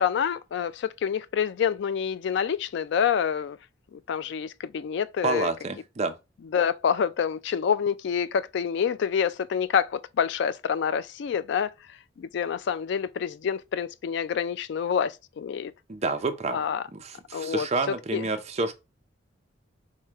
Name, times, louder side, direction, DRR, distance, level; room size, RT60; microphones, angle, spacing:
voice 1, 0.0-3.6 4.1-5.5 6.5-11.7 12.2-15.7 16.5-16.8 17.3-17.7 18.1-18.2, left 7 dB, 60° left, 0.3 m, -27 dB
voice 2, 5.2-6.1 15.9-16.7 16.9-18.7, right 3 dB, 35° right, 0.5 m, -29 dB
4.7 x 2.2 x 4.4 m
head